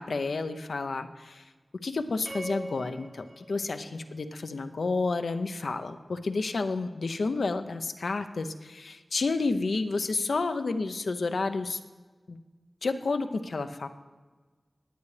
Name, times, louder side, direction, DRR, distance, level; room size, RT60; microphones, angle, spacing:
voice 1, 0.0-1.5 1.8-11.8 12.3-12.4 12.8-13.9, left 3 dB, 85° left, 9 dB, 0.6 m, -30 dB
sound 1, 2.3-4.6, right 1 dB, 80° right, 4.1 m, -43 dB
19.5 x 8.3 x 3.3 m, 1.3 s
wide cardioid pair, 50°, 0 cm